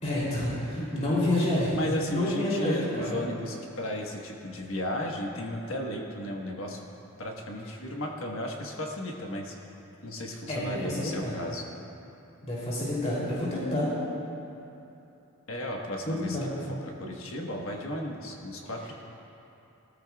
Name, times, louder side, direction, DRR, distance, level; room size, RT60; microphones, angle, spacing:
voice 1, 0.0-1.8 2.1-3.2 10.5-11.4 12.4-13.9 16.1-16.5, left 1 dB, 30° left, -7 dB, 3.1 m, -28 dB
voice 2, 0.8-1.1 1.7-6.8 7.2-9.6 10.0-11.6 15.5-18.9, left 1 dB, 60° left, 0 dB, 1.4 m, -35 dB
18.5 x 13.5 x 2.4 m, 2.9 s
head